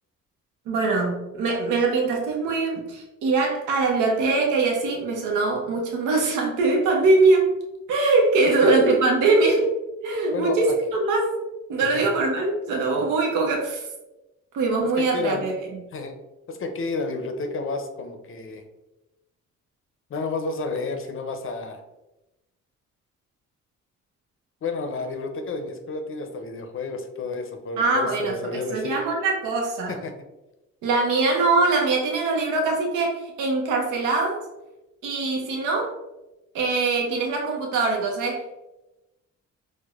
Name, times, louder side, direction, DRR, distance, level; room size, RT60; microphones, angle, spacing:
voice 1, 0.7-7.5 7.9-9.7 10.0-11.3 11.7-13.9 14.5-15.5 27.8-30.0 30.8-34.4 35.0-35.9 36.5-38.4, right 3 dB, 85° right, 0 dB, 0.7 m, -22 dB
voice 2, 8.5-8.9 10.3-10.8 11.8-12.1 14.8-15.6 15.9-16.2 16.5-18.6 20.1-21.8 24.6-29.0 29.9-30.1, left 3 dB, 45° left, 6 dB, 0.5 m, -30 dB
4.5 x 2.1 x 2.4 m, 0.99 s
cardioid pair, 90°, 30 cm